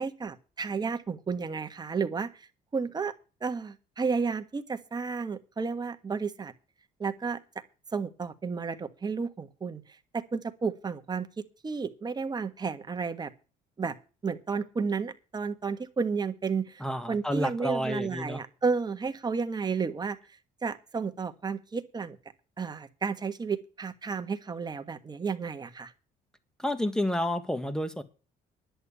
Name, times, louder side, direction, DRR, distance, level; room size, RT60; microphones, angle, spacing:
voice 1, 0.0-2.5 2.7-3.1 3.4-6.5 7.0-7.4 7.9-9.8 10.1-11.3 11.6-13.3 13.8-13.9 14.2-16.8 17.1-20.2 20.6-22.2 22.6-25.9, right 5 dB, 25° right, 8 dB, 1.4 m, -32 dB
voice 2, 16.8-18.4 26.6-28.0, equal, 5° left, 11 dB, 1.7 m, -30 dB
11.0 x 7.1 x 8.3 m, 0.34 s
cardioid pair, 110°, 17 cm